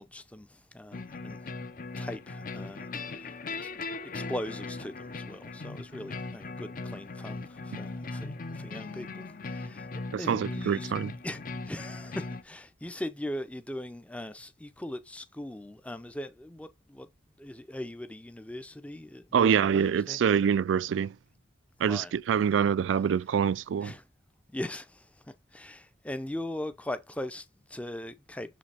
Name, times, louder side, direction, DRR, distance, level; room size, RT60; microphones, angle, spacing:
voice 1, 0.0-1.5 2.0-10.9 11.2-11.4 11.7-17.1 17.4-20.2 21.8-22.5 23.8-24.1 24.5-28.6, left 1 dB, 5° left, 0.5 m, -40 dB
sound 1, 0.9-12.4, left 3 dB, 45° left, 0.6 m, -39 dB
voice 2, 10.1-11.1 19.3-21.2 21.8-23.9, right 7 dB, 80° right, 0.3 m, -25 dB
6.7 x 5.0 x 3.4 m
head